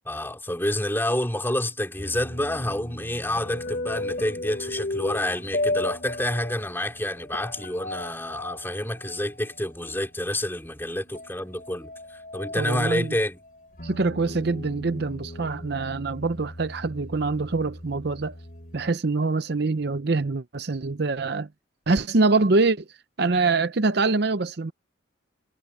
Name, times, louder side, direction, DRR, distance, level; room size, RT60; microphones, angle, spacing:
voice 1, 0.1-11.9 12.3-13.4, left 1 dB, 10° left, 3.7 m, -28 dB
sound 1, 2.0-10.2 10.8-18.9, left 2 dB, 45° left, 3.4 m, -36 dB
voice 2, 12.6-13.2 13.8-18.3 18.7-21.5 21.9-22.9 23.2-24.7, right 3 dB, 55° right, 0.7 m, -24 dB
head